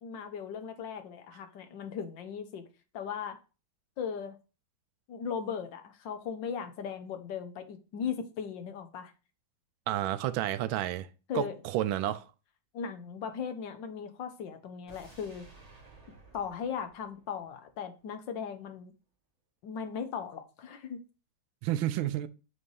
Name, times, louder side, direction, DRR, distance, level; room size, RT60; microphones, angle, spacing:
voice 1, 0.0-2.7 2.9-3.4 4.0-4.3 5.1-9.1 11.3-11.5 12.7-15.5 16.3-18.9 19.6-21.0, left 7 dB, 70° left, 1.6 m, -38 dB
voice 2, 9.9-11.1 11.3-12.2 21.6-22.3, right 13 dB, 85° right, 1.4 m, -30 dB
sound 1, 14.9-18.0 18.3-18.4, right 3 dB, 20° right, 1.8 m, -56 dB
8.0 x 3.4 x 5.4 m
omnidirectional pair, 2.1 m